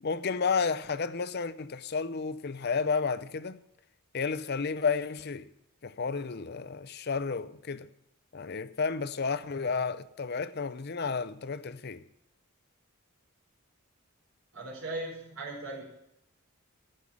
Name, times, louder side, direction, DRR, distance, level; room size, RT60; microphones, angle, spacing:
voice 1, 0.0-3.6 4.1-5.5 5.8-7.9 8.3-12.0, left 5 dB, 50° left, 0.6 m, -32 dB
voice 2, 14.5-15.8, right 2 dB, 65° right, 4.7 m, -38 dB
14.5 x 5.5 x 9.8 m
head